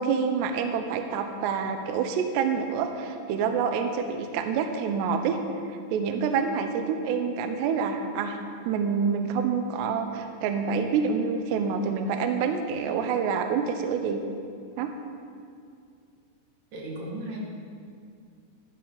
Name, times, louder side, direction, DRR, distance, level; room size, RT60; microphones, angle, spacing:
voice 1, 0.0-5.4 5.7-8.4 8.7-14.2 14.8-14.9, right 6 dB, 80° right, 6 dB, 2.6 m, -27 dB
voice 2, 16.7-17.4, right 2 dB, 55° right, -3 dB, 3.1 m, -35 dB
12.5 x 12.0 x 3.9 m, 2.4 s
omnidirectional pair, 5.3 m